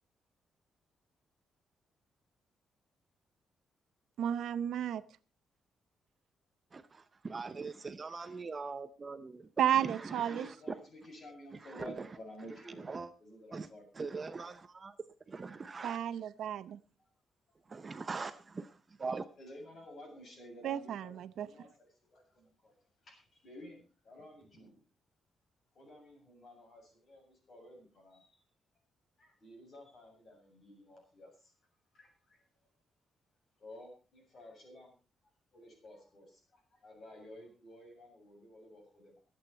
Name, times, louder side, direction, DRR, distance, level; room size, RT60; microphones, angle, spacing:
voice 1, 4.2-5.0 9.6-10.5 15.8-16.8 20.6-21.5, right 10 dB, 75° right, 14 dB, 0.8 m, -32 dB
voice 2, 6.7-9.5 9.7-10.5 11.7-11.9 12.9-13.1 13.5-13.7 13.9-14.9 15.3-16.0 17.7-19.3, right 4 dB, 25° right, 11 dB, 0.7 m, -42 dB
voice 3, 10.0-12.9 13.2-13.9 17.0-17.1 17.7-17.8 19.4-22.7 23.0-24.7 25.7-28.4 29.2-31.5 31.9-32.4 33.6-34.9 35.5-39.2, left 1 dB, 40° left, 2 dB, 7.5 m, -53 dB
23.5 x 8.8 x 4.4 m, 0.34 s
wide cardioid pair, 170°, 0 cm